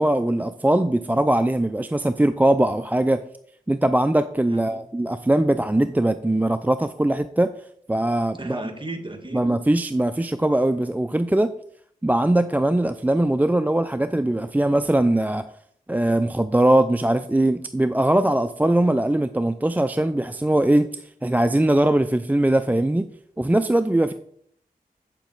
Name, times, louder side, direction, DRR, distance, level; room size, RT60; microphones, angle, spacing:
voice 1, 0.0-3.2 3.7-7.5 7.9-8.6 9.3-11.5 12.0-15.5 15.9-23.1 23.4-24.1, right 1 dB, 10° right, 11 dB, 0.4 m, -21 dB
voice 2, 4.5-4.8 8.4-9.4, right 2 dB, 30° right, 5 dB, 1.6 m, -35 dB
8.0 x 6.8 x 3.9 m, 0.69 s
cardioid pair, 40°, 15 cm